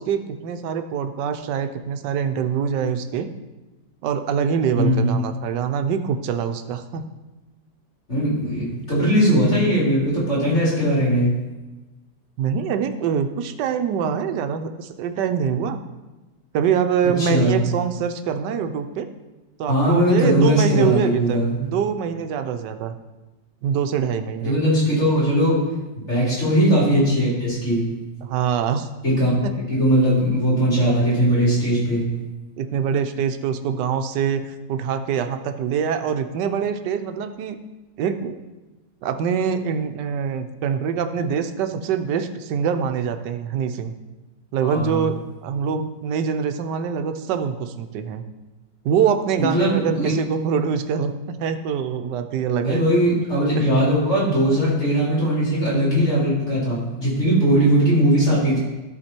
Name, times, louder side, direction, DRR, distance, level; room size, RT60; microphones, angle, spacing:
voice 1, 0.0-3.3 4.0-7.0 8.7-8.8 12.4-15.8 16.5-19.1 19.6-22.9 23.6-24.6 28.2-28.9 29.4-29.5 32.6-37.6 38.0-38.3 39.0-43.9 44.5-48.2 48.8-52.9 53.5-53.8, right 7 dB, 75° right, 8 dB, 1.3 m, -24 dB
voice 2, 4.7-5.2 8.1-11.3 17.0-17.6 19.7-21.6 24.4-25.6 25.9-27.8 29.0-29.3 29.7-32.1 44.6-45.1 49.4-50.1 52.6-58.6, equal, 40° left, -8 dB, 3.8 m, -19 dB
12.5 x 4.5 x 4.4 m, 1.1 s
omnidirectional pair, 1.9 m